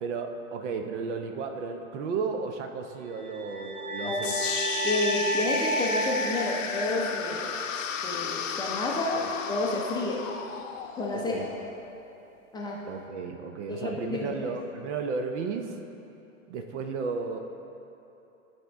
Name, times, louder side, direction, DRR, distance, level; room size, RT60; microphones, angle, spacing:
voice 1, 0.0-4.3 9.1-9.3 11.1-11.5 12.9-15.7 16.5-17.4, right 5 dB, 55° right, 6 dB, 0.8 m, -33 dB
sound 1, 3.1-7.4, right 2 dB, 85° right, 1.4 m, -32 dB
sound 2, 4.2-12.3, left 7 dB, 65° left, 0.7 m, -34 dB
voice 2, 4.8-10.2 11.0-11.3 12.5-12.8 13.7-14.4, left 2 dB, 10° left, -3 dB, 0.5 m, -30 dB
12.5 x 4.4 x 3.5 m, 2.9 s
hypercardioid pair, 115°, 42 cm